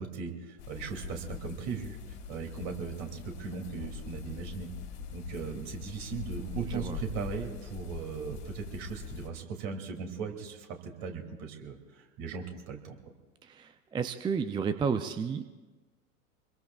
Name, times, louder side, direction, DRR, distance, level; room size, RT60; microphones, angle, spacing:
voice 1, 0.0-4.7 5.1-13.0, right 5 dB, 50° right, 3 dB, 2.8 m, -38 dB
sound 1, 0.6-9.3, left 6 dB, 60° left, 2.5 m, -42 dB
voice 2, 6.4-7.0 8.3-8.4 13.4-15.5, right 6 dB, 10° right, 10 dB, 0.4 m, -32 dB
27.0 x 22.0 x 2.4 m, 1.2 s
figure-of-eight pair, 85°, 42 cm